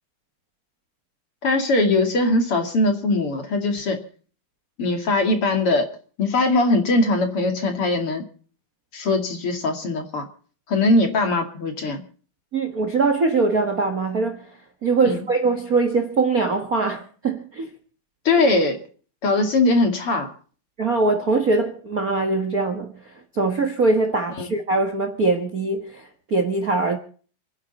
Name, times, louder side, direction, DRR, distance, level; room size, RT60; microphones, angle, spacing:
voice 1, 1.4-4.0 4.8-5.9 6.2-8.2 8.9-10.3 10.7-12.0 15.0-15.2 18.2-18.8 19.2-20.3 24.4-24.5, left 2 dB, 40° left, 2.8 m, -21 dB
voice 2, 12.5-14.6 14.8-17.7 20.8-27.0, right 3 dB, 70° right, 0.8 m, -22 dB
29.5 x 10.0 x 4.2 m
omnidirectional pair, 4.4 m